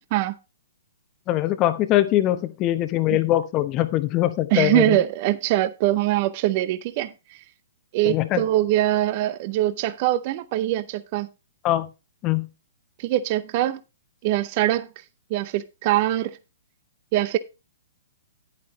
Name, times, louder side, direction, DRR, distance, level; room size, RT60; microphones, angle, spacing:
voice 1, 1.3-5.0 8.0-8.4 11.6-11.9 12.2-12.5, left 14 dB, 30° left, 0.9 m, -22 dB
voice 2, 4.5-7.1 7.9-11.3 13.0-13.8 14.2-14.9 15.3-16.4 17.1-17.4, right 14 dB, 40° right, 0.7 m, -23 dB
10.5 x 9.3 x 3.0 m
figure-of-eight pair, 120°, 0 cm